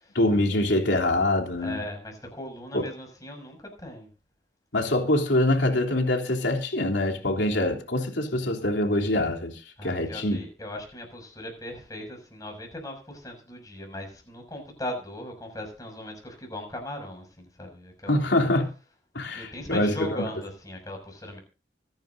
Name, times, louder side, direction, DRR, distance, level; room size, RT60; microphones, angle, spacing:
voice 1, 0.1-1.8 2.7-2.8 4.7-10.4 18.1-18.7 19.1-20.3, left 1 dB, 70° left, 3.4 m, -24 dB
voice 2, 1.6-4.1 9.8-18.3 19.3-21.4, left 1 dB, 20° left, 6.5 m, -38 dB
25.0 x 10.5 x 2.7 m
head